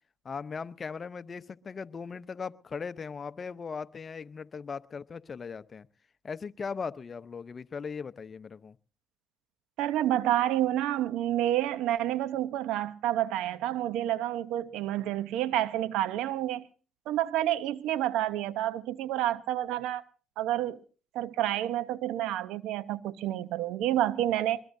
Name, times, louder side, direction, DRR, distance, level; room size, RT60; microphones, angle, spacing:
voice 1, 0.2-5.9 6.2-8.8, left 5 dB, 40° left, 0.8 m, -38 dB
voice 2, 9.8-16.7 17.1-20.0 20.4-20.8 21.1-24.6, right 13 dB, 80° right, 0.8 m, -29 dB
22.0 x 20.5 x 2.7 m
supercardioid pair, 65°, 0 cm